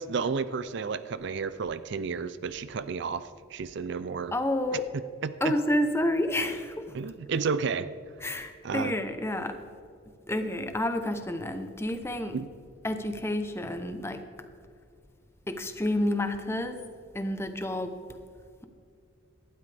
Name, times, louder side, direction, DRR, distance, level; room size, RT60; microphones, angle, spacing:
voice 1, 0.0-4.3 4.9-5.5 6.9-7.9 8.6-9.0 12.3-12.5, right 5 dB, 55° right, 14 dB, 0.4 m, -32 dB
voice 2, 4.3-4.8 5.4-7.0 8.2-9.6 10.3-12.4 12.8-14.2 15.5-16.8 17.1-17.9, left 1 dB, 10° left, 7 dB, 0.8 m, -29 dB
18.0 x 12.0 x 3.4 m, 2.3 s
head